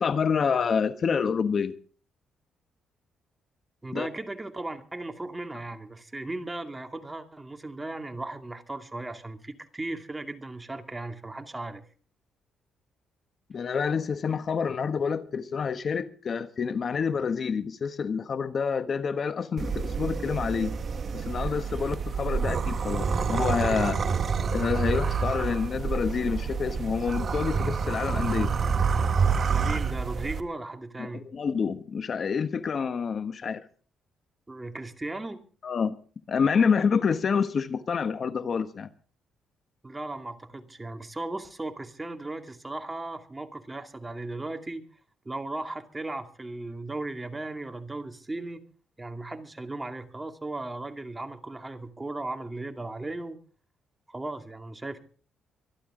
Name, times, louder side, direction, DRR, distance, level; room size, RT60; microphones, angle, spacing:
voice 1, 0.0-1.7 3.9-4.1 13.5-20.7 21.1-24.0 24.5-28.5 31.0-33.6 35.6-35.9 36.3-38.9, left 6 dB, 50° left, 1.1 m, -28 dB
voice 2, 3.8-11.8 29.5-31.2 34.5-35.4 39.8-44.8 45.2-48.6 49.0-53.4 54.1-55.0, right 2 dB, 15° right, 2.4 m, -36 dB
sound 1, 19.6-30.4, right 5 dB, 45° right, 1.6 m, -28 dB
25.0 x 11.5 x 3.7 m
cardioid pair, 90°, 0 cm